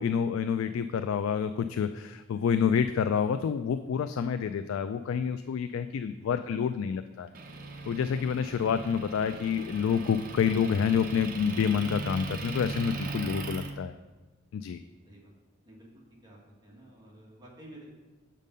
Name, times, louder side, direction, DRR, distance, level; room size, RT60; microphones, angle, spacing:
voice 1, 0.0-7.3 7.9-13.9 14.5-14.8, left 7 dB, 80° left, 10 dB, 0.3 m, -28 dB
Motor vehicle (road) / Engine, 7.3-13.7, right 3 dB, 45° right, 0.8 m, -39 dB
voice 2, 13.2-13.5 15.0-15.3 15.6-15.9 16.2-18.0, right 1 dB, 20° right, -4 dB, 1.9 m, -51 dB
7.3 x 5.3 x 5.4 m, 1.2 s
head